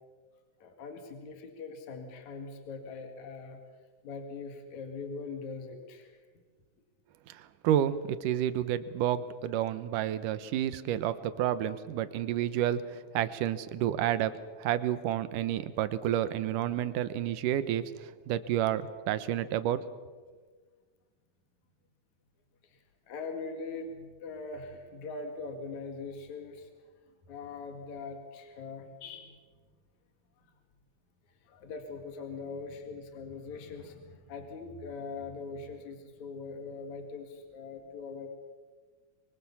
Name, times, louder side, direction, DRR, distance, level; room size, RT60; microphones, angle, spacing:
voice 1, 0.6-3.6 4.0-6.2 22.6-26.7 27.1-29.5 30.4-30.5 31.4-38.3, left 4 dB, 65° left, 5 dB, 3.4 m, -42 dB
voice 2, 7.3-19.9, right 11 dB, 80° right, 13 dB, 2.6 m, -30 dB
26.0 x 23.5 x 7.2 m, 1.4 s
omnidirectional pair, 3.7 m